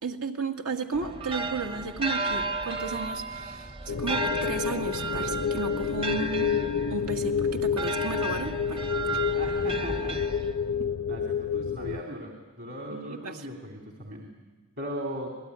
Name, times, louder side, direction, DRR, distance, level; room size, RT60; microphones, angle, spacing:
voice 1, 0.0-6.5 6.9-8.8 10.8-10.9 12.9-13.5, right 4 dB, 85° right, 3 dB, 2.1 m, -34 dB
sound 1, 0.9-10.9, right 2 dB, 25° right, 0.8 m, -34 dB
sound 2, 3.9-12.0, left 6 dB, 90° left, 0.7 m, -29 dB
voice 2, 9.3-10.2 11.1-12.3 12.6-14.3 14.8-15.3, right 1 dB, 55° right, 1 dB, 3.1 m, -37 dB
27.5 x 19.5 x 9.7 m, 1.3 s
head